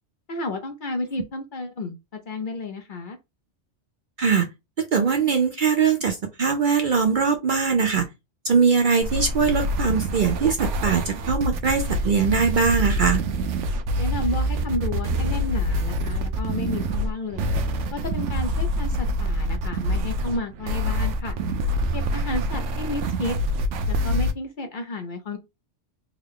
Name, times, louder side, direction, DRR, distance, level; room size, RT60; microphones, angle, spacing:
voice 1, 0.3-3.2 14.0-17.5 17.9-21.4 21.9-23.4 23.9-25.4, left 2 dB, 50° left, 0.7 m, -31 dB
voice 2, 4.8-8.1 8.4-13.2, right 5 dB, 55° right, 0.6 m, -21 dB
sound 1, 9.0-24.3, equal, 80° right, 0.9 m, -26 dB
3.5 x 2.2 x 3.5 m
omnidirectional pair, 1.2 m